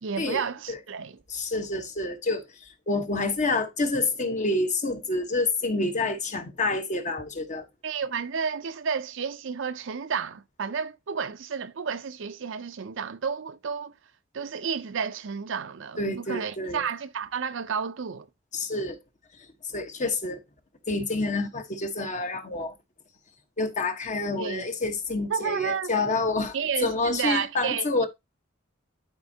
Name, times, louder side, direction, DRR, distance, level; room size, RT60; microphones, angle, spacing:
voice 1, 0.0-1.2 7.8-13.9 14.3-18.3 24.4-24.7 25.3-25.9 26.5-28.1, right 6 dB, 70° right, 0.6 m, -31 dB
voice 2, 1.3-7.7 16.0-16.9 18.5-19.0 19.4-20.4 20.9-22.7 23.6-26.6 26.8-28.1, left 2 dB, 40° left, 1.2 m, -28 dB
11.5 x 4.4 x 2.8 m
head